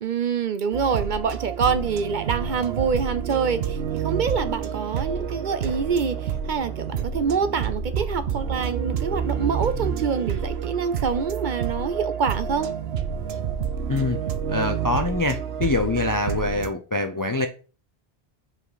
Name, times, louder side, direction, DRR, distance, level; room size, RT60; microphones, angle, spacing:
voice 1, 0.0-12.7, right 6 dB, 55° right, 0.6 m, -26 dB
sound 1, 0.7-16.7, right 7 dB, 75° right, 0.9 m, -29 dB
voice 2, 13.9-14.2 14.5-17.5, left 2 dB, 35° left, 0.3 m, -24 dB
5.2 x 4.9 x 3.9 m
omnidirectional pair, 1.1 m